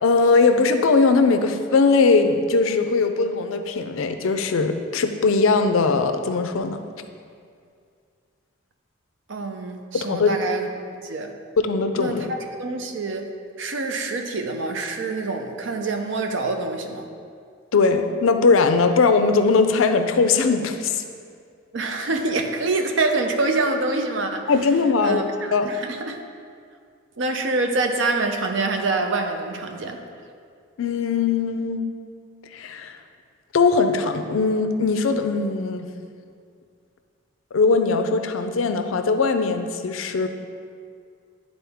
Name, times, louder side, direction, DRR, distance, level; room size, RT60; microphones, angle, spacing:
voice 1, 0.0-6.8 9.9-10.3 11.6-12.3 17.7-21.0 24.5-25.7 30.8-31.8 32.5-32.9 33.5-36.0 37.5-40.3, left 4 dB, 85° left, 8 dB, 0.5 m, -20 dB
voice 2, 9.3-10.7 11.0-11.3 11.9-13.3 13.6-17.1 21.7-24.5 25.0-26.2 27.2-30.0, right 3 dB, 70° right, 5 dB, 0.6 m, -26 dB
10.0 x 4.0 x 3.5 m, 2.3 s
head